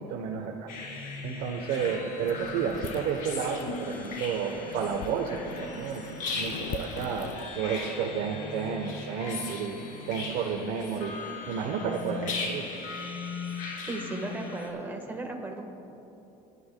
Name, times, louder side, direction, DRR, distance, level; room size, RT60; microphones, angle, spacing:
voice 1, 0.1-0.7 1.2-6.0 6.3-11.2 11.5-12.6, right 6 dB, 70° right, 1 dB, 0.9 m, -31 dB
Horror game menu ambience, 0.7-14.7, left 4 dB, 55° left, 2.4 m, -38 dB
sound 1, 2.3-7.5, left 8 dB, 75° left, 0.6 m, -43 dB
voice 2, 13.9-15.7, right 2 dB, 10° right, 2 dB, 1.3 m, -35 dB
26.5 x 11.0 x 2.2 m, 2.9 s
cardioid pair, 150°, 16 cm